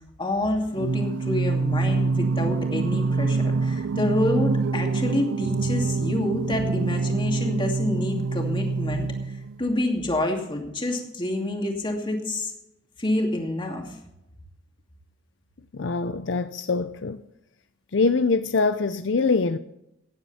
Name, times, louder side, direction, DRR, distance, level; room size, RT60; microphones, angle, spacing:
voice 1, 0.2-9.1 9.6-12.5 13.0-13.8, left 1 dB, 25° left, 2.6 m, -27 dB
Singing, 0.7-9.7, right 4 dB, 70° right, 0.4 m, -25 dB
voice 2, 15.7-17.2 17.9-19.6, left 4 dB, 65° left, 0.6 m, -23 dB
16.5 x 10.5 x 4.3 m
head